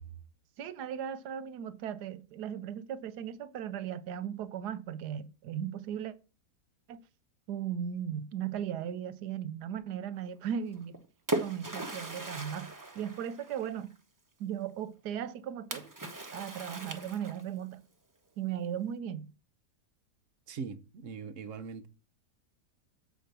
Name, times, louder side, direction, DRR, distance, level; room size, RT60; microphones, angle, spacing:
voice 1, 0.6-6.1 6.9-7.0 7.5-11.0 11.4-14.0 14.4-15.9 16.3-17.8 18.4-19.3, right 9 dB, 85° right, 1.3 m, -37 dB
Splash splatter, 10.7-13.9 15.7-17.6, right 2 dB, 15° right, 0.8 m, -38 dB
voice 2, 20.5-21.9, right 5 dB, 60° right, 1.1 m, -41 dB
7.6 x 4.6 x 6.8 m
omnidirectional pair, 1.7 m